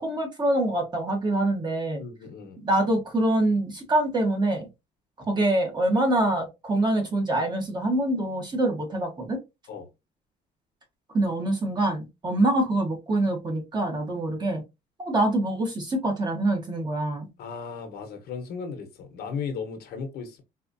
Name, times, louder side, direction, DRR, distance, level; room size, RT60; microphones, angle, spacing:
voice 1, 0.0-2.0 2.6-4.7 5.3-9.4 11.1-14.6 15.0-17.3, right 1 dB, 25° right, 1.2 m, -25 dB
voice 2, 2.0-2.6 9.7-9.9 17.4-20.4, left 5 dB, 70° left, 0.9 m, -36 dB
4.2 x 2.4 x 2.5 m
cardioid pair, 110°, 17 cm